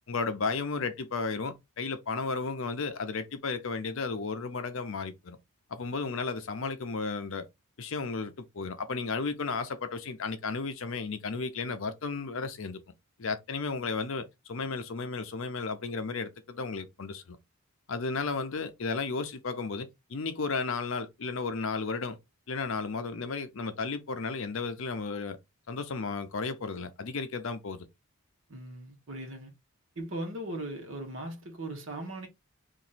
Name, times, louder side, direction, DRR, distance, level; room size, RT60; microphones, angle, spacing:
voice 1, 0.1-5.4 5.7-7.5 7.8-12.8 13.2-17.4 17.9-22.2 22.5-25.4 25.7-27.9, left 4 dB, 60° left, 0.6 m, -34 dB
voice 2, 28.5-29.5 30.0-32.3, right 1 dB, 60° right, 1.2 m, -38 dB
3.0 x 2.6 x 4.0 m
head